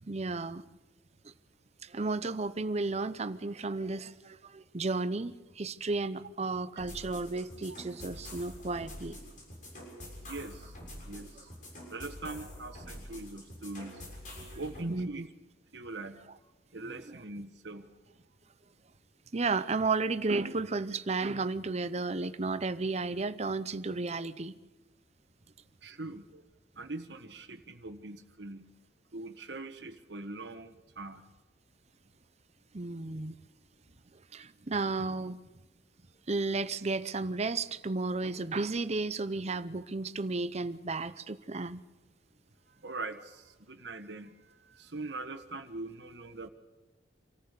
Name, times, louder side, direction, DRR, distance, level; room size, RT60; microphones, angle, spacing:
voice 1, 0.0-0.6 1.2-1.3 1.8-9.2 14.4-14.6 14.9-15.3 19.3-24.5 32.7-33.4 34.3-35.4 36.3-41.8, right 3 dB, 35° right, 14 dB, 0.7 m, -33 dB
sound 1, 6.8-14.8, left 1 dB, 45° left, 6.9 m, -46 dB
voice 2, 10.3-10.8 11.0-11.5 11.8-14.1 14.5-15.2 15.7-17.9 25.8-26.4 26.7-28.7 29.1-31.2 42.7-46.5, right 2 dB, 70° right, 8 dB, 1.4 m, -42 dB
26.5 x 14.5 x 6.8 m, 1.1 s
head